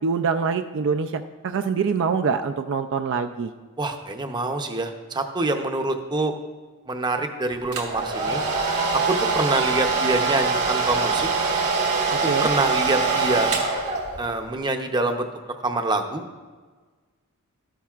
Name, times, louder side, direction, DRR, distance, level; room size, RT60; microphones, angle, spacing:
voice 1, 0.0-3.5 12.1-12.5, right 5 dB, 60° right, 8 dB, 0.4 m, -25 dB
voice 2, 3.8-6.3 6.9-8.4 9.1-11.3 12.4-13.5 14.2-15.3 15.6-16.2, right 2 dB, 20° right, 5 dB, 0.6 m, -25 dB
Domestic sounds home sounds, 7.7-14.4, right 4 dB, 85° right, 1.6 m, -23 dB
12.5 x 10.0 x 2.4 m, 1.4 s
head